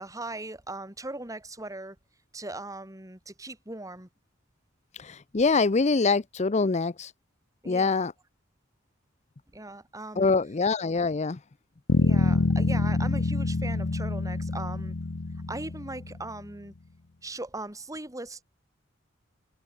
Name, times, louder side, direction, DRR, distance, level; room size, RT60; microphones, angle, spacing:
voice 1, 0.0-2.0 2.3-4.1 7.6-8.1 9.5-10.3 12.0-14.9 15.5-16.7 17.2-18.4, right 2 dB, 15° right, 2.7 m, -39 dB
voice 2, 5.0-7.1 7.7-8.1 10.2-11.4, left 4 dB, 35° left, 0.6 m, -24 dB
Bass guitar, 11.9-16.3, left 2 dB, 65° left, 0.9 m, -26 dB
head